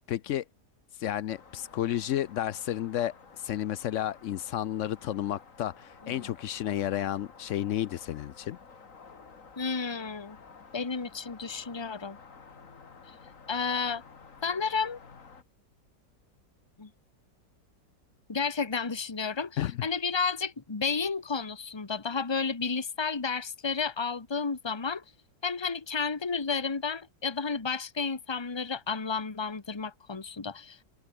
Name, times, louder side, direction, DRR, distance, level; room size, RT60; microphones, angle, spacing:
voice 1, 0.1-0.4 1.0-3.1 3.4-8.6 19.6-19.8, left 12 dB, 70° left, 0.7 m, -31 dB
sound 1, 1.3-15.4, left 5 dB, 45° left, 2.4 m, -52 dB
voice 2, 9.6-10.4 10.7-12.2 13.5-14.0 14.4-15.0 16.8-16.9 18.3-25.0 25.4-30.8, left 5 dB, 15° left, 1.2 m, -32 dB
omnidirectional pair, 1.9 m